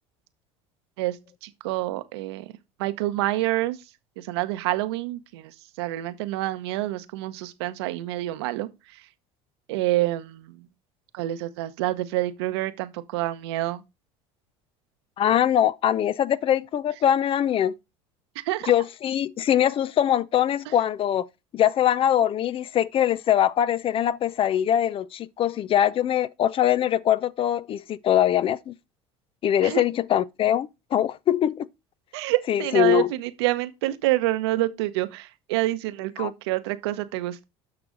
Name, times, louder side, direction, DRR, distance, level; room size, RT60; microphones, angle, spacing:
voice 1, 1.4-2.5 2.8-3.8 4.2-5.5 5.8-8.7 9.7-10.6 11.1-13.8 18.4-18.7 29.6-29.8 32.1-37.4, right 16 dB, 85° right, 0.9 m, -27 dB
voice 2, 15.2-17.7 18.7-21.3 21.5-28.8 29.4-31.7 32.5-33.1 36.2-36.3, left 10 dB, 45° left, 0.5 m, -22 dB
9.7 x 6.1 x 3.8 m
supercardioid pair, 90°, 13 cm